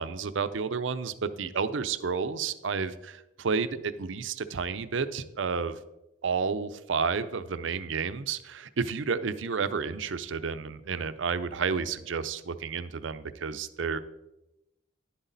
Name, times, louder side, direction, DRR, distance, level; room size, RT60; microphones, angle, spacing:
voice 1, 0.0-5.8 6.2-14.0, right 5 dB, 70° right, 12 dB, 0.5 m, -31 dB
11.0 x 8.1 x 4.0 m, 0.93 s
head